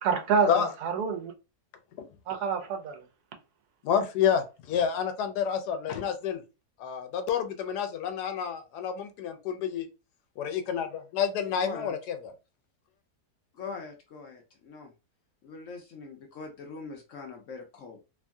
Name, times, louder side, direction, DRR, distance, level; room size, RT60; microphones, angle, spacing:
voice 1, 0.0-1.3 2.3-3.0, right 5 dB, 80° right, 1.1 m, -27 dB
voice 2, 3.8-6.4 6.8-9.9 10.4-12.3, left 8 dB, 85° left, 1.2 m, -29 dB
voice 3, 11.5-11.9 13.5-14.9 15.4-18.0, left 5 dB, 65° left, 0.8 m, -42 dB
3.0 x 2.6 x 2.2 m
omnidirectional pair, 1.7 m